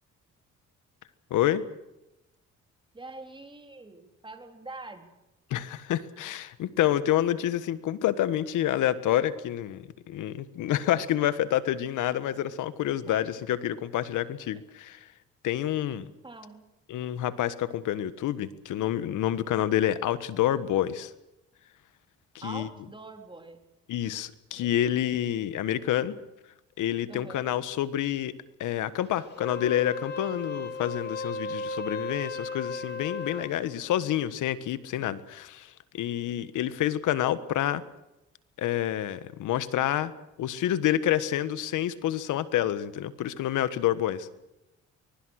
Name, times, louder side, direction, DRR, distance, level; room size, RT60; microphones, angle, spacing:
voice 1, 1.3-1.6 5.5-15.1 15.4-16.1 16.9-21.1 22.4-22.7 23.9-26.1 26.8-28.3 28.6-37.8 38.6-40.1 40.4-44.3, left 12 dB, 85° left, 14 dB, 1.5 m, -28 dB
voice 2, 2.9-5.0 13.1-13.2 16.2-16.7 22.4-23.6 24.5-25.0 27.1-27.5, right 2 dB, 15° right, 5 dB, 3.8 m, -44 dB
Wind instrument woodwind instrument, 29.3-33.6, left 2 dB, 35° left, 3.4 m, -35 dB
23.5 x 22.5 x 6.5 m, 0.92 s
cardioid pair, 90°, 30 cm